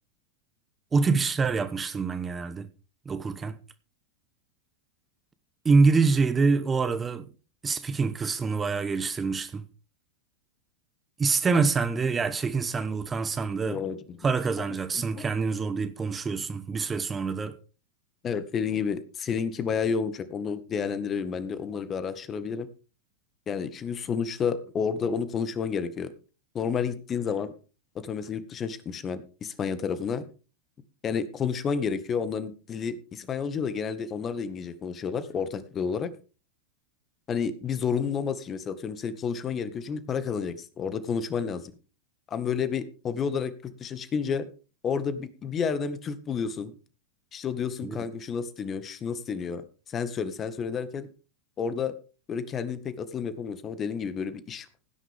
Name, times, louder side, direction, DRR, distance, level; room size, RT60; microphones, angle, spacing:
voice 1, 0.9-2.7 3.0-3.6 5.6-7.3 7.6-9.6 11.2-13.8 14.2-17.6 47.8-48.0, right 4 dB, 20° right, 1.2 m, -26 dB
voice 2, 13.7-14.2 14.9-15.3 18.2-22.7 23.5-26.1 26.5-27.5 28.0-30.3 31.0-36.1 37.3-41.7 42.3-44.5 44.8-46.7 47.3-51.1 51.6-51.9 52.3-54.7, left 6 dB, 30° left, 1.8 m, -30 dB
17.0 x 10.0 x 3.6 m
hypercardioid pair, 95°, 0 cm